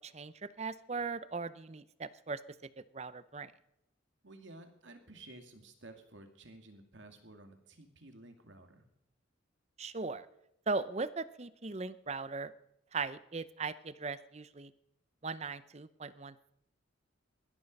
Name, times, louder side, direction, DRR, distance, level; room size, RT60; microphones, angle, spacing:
voice 1, 0.0-2.4 2.9-3.5 9.8-10.3 10.7-12.5 12.9-14.7 15.2-16.3, right 4 dB, 35° right, 15 dB, 0.6 m, -38 dB
voice 2, 4.2-8.9, right 2 dB, 70° right, 6 dB, 2.3 m, -53 dB
19.5 x 13.5 x 5.3 m, 0.81 s
head